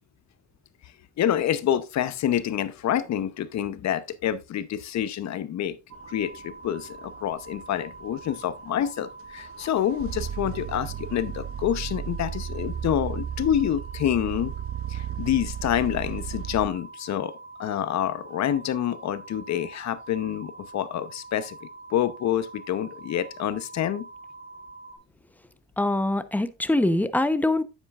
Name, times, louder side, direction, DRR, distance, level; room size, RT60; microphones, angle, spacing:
voice 1, 1.2-5.8 6.1-14.5 14.9-17.3 17.6-24.1, left 10 dB, 65° left, 0.8 m, -27 dB
sound 1, 5.9-25.0, right 3 dB, 85° right, 2.6 m, -45 dB
sound 2, 6.0-16.7, right 9 dB, 50° right, 0.7 m, -35 dB
voice 2, 25.8-27.6, left 1 dB, 5° left, 0.8 m, -23 dB
9.5 x 8.2 x 2.4 m
cardioid pair, 90°, 30 cm